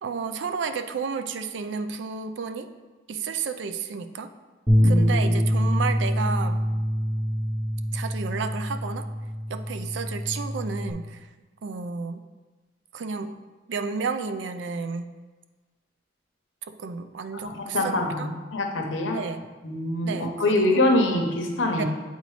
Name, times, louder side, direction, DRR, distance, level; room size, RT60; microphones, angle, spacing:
voice 1, 0.0-2.7 3.1-4.3 4.8-6.7 7.9-9.1 9.5-11.2 11.6-12.2 12.9-13.4 13.7-15.1 16.7-18.3 19.1-19.4 20.0-20.7 21.8-21.9, right 5 dB, 70° right, 9 dB, 0.4 m, -32 dB
Bass guitar, 4.7-10.9, equal, 10° right, 0.8 m, -25 dB
voice 2, 4.8-5.4 17.4-19.2 19.6-21.8, left 1 dB, 85° left, 2 dB, 0.9 m, -25 dB
8.1 x 3.9 x 3.2 m, 1.3 s
head